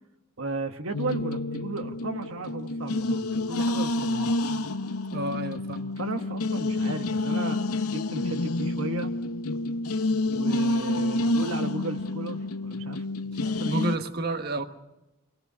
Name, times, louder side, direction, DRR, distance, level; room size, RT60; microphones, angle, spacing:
voice 1, 0.4-4.3 6.0-9.1 10.2-13.9, right 2 dB, 65° right, 5 dB, 1.2 m, -35 dB
sound 1, 0.9-13.9, left 2 dB, 90° left, 0.8 m, -28 dB
voice 2, 5.1-5.9 13.6-14.6, right 2 dB, 45° right, 7 dB, 1.4 m, -30 dB
26.5 x 18.0 x 6.8 m, 0.98 s
head